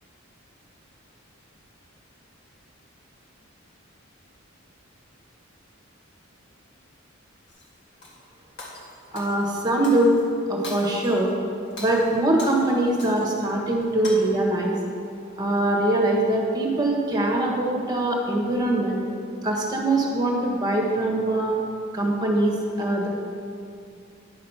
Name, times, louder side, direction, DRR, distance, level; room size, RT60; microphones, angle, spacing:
Shatter, 7.5-8.2 8.6-10.2 10.6-11.3 11.7-13.5 13.8-14.1, left 2 dB, 60° left, 1.9 m, -41 dB
voice 1, 9.1-10.2 10.5-11.3 11.8-14.8 15.4-19.0 19.4-21.6 21.9-23.1, right 1 dB, 20° right, 0 dB, 1.4 m, -22 dB
10.0 x 6.4 x 5.8 m, 2.4 s
head